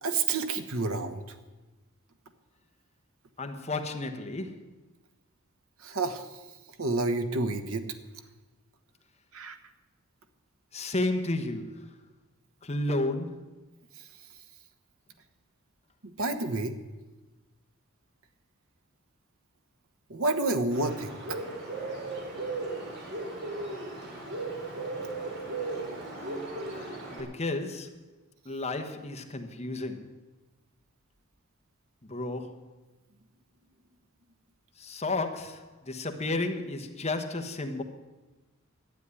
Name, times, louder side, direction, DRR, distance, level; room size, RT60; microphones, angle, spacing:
voice 1, 0.0-1.2 5.8-6.3 6.8-7.9 9.3-9.6 16.0-16.7 20.1-21.4, right 3 dB, 75° right, 1.3 m, -29 dB
voice 2, 3.4-4.6 10.7-11.9 12.6-13.6 26.6-28.0 28.4-30.1 32.1-32.6 34.8-37.8, left 2 dB, 30° left, 1.2 m, -32 dB
Bird, 20.7-27.2, right 2 dB, 55° right, 3.8 m, -36 dB
12.0 x 9.3 x 9.8 m
head